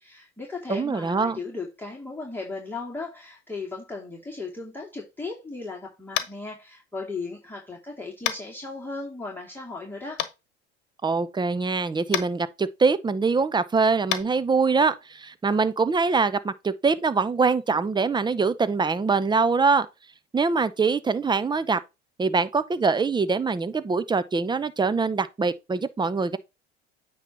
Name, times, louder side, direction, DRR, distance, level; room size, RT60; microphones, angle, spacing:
voice 1, 0.0-10.2, left 3 dB, 5° left, 2.4 m, -36 dB
voice 2, 0.7-1.4 11.0-19.9 20.3-21.8 22.2-26.4, right 4 dB, 15° right, 0.7 m, -23 dB
Tap, 6.1-6.4 8.2-8.4 10.2-10.3 12.1-12.3 14.1-14.2, left 13 dB, 65° left, 1.2 m, -27 dB
9.0 x 3.1 x 5.9 m
hypercardioid pair, 75°, 34 cm